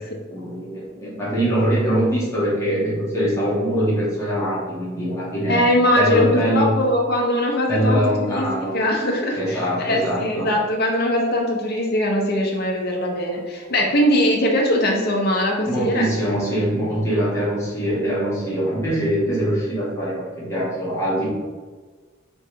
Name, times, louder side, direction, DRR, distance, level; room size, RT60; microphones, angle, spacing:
voice 1, 0.3-5.6 5.9-6.7 7.7-8.8 9.3-10.5 15.6-21.3, equal, 15° left, -8 dB, 1.4 m, -23 dB
voice 2, 5.5-16.1, left 1 dB, 50° left, 0 dB, 0.9 m, -21 dB
3.4 x 3.2 x 4.6 m, 1.4 s
head